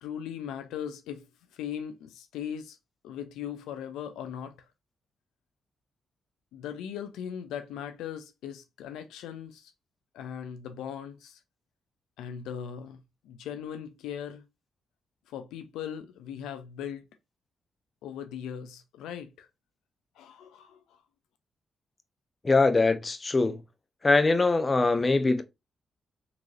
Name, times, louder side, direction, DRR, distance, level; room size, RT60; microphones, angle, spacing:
voice 1, 0.0-2.8 3.0-4.6 6.5-9.7 10.1-11.4 12.2-14.4 15.3-17.0 18.0-19.5 20.2-21.0, left 9 dB, 85° left, 0.4 m, -39 dB
voice 2, 22.4-23.6 24.0-25.4, left 3 dB, 35° left, 0.6 m, -22 dB
3.9 x 3.0 x 2.4 m
supercardioid pair, 45°, 0 cm